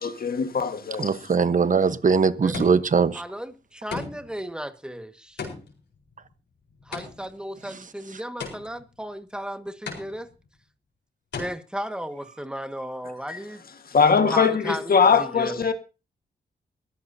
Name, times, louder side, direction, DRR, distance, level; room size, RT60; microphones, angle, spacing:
voice 1, 0.0-1.1 13.3-13.4 13.9-15.7, left 5 dB, 55° left, 1.7 m, -21 dB
voice 2, 1.0-3.2, right 5 dB, 45° right, 1.2 m, -21 dB
voice 3, 2.4-2.8 3.1-3.5 3.8-5.4 6.9-10.3 11.4-13.6 14.3-15.7, equal, 5° right, 1.7 m, -35 dB
sound 1, 2.5-3.1 3.9-4.4 5.4-7.4 8.4-9.0 9.9-10.5 11.3-11.4, left 5 dB, 75° left, 4.5 m, -36 dB
21.0 x 14.0 x 2.8 m
cardioid pair, 85°, 18 cm